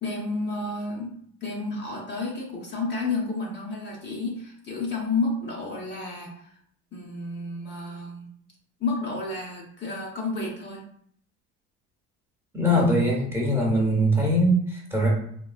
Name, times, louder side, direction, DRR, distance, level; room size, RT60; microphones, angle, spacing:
voice 1, 0.0-6.3 6.9-8.3 8.8-10.8, left 3 dB, 35° left, -3 dB, 0.7 m, -31 dB
voice 2, 12.5-15.1, equal, 10° right, -4 dB, 0.9 m, -22 dB
3.7 x 2.2 x 2.4 m, 0.64 s
supercardioid pair, 100°, 31 cm